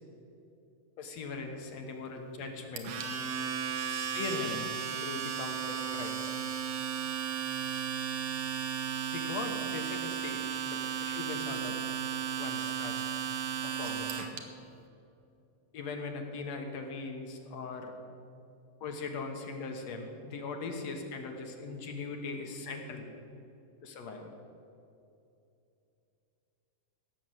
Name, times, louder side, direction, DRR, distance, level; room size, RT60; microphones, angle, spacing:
voice 1, 1.0-3.0 3.8-4.7 5.0-6.3 9.1-11.8 12.4-13.0 13.6-14.3 15.7-17.9 18.8-23.1 23.8-24.3, left 4 dB, 60° left, 4 dB, 2.0 m, -40 dB
Domestic sounds home sounds, 2.8-14.4, right 8 dB, 65° right, 2.0 m, -35 dB
17.0 x 6.9 x 7.9 m, 2.7 s
omnidirectional pair, 3.9 m